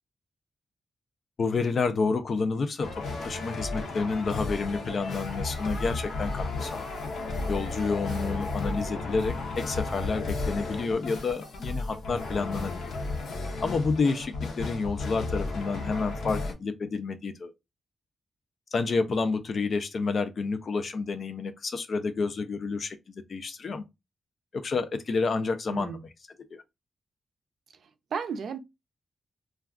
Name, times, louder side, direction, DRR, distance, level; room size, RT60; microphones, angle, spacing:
voice 1, 1.4-2.9 3.2-6.9 7.5-12.8 13.6-17.5 18.7-23.8 24.5-26.1 26.5-26.6, left 4 dB, 45° left, 0.4 m, -29 dB
sound 1, 2.8-16.5, left 3 dB, 80° left, 0.6 m, -33 dB
voice 2, 25.7-26.0 27.8-28.6, right 6 dB, 70° right, 0.4 m, -34 dB
2.3 x 2.3 x 3.4 m
wide cardioid pair, 180°, 0 cm